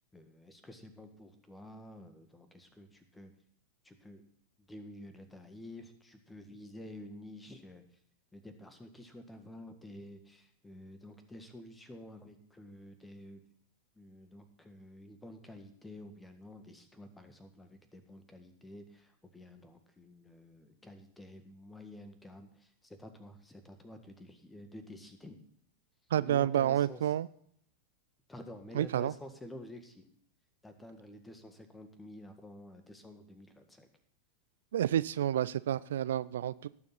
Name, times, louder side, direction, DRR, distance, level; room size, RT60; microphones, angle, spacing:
voice 1, 0.1-3.3 3.8-4.2 4.6-7.8 8.3-13.4 13.9-25.4 26.2-27.0 28.3-30.1 30.6-33.9, left 1 dB, 10° left, 1.7 m, -50 dB
voice 2, 26.1-27.3 28.7-29.1 34.7-36.7, right 11 dB, 60° right, 0.4 m, -29 dB
18.5 x 7.1 x 4.1 m
figure-of-eight pair, 90°, 0 cm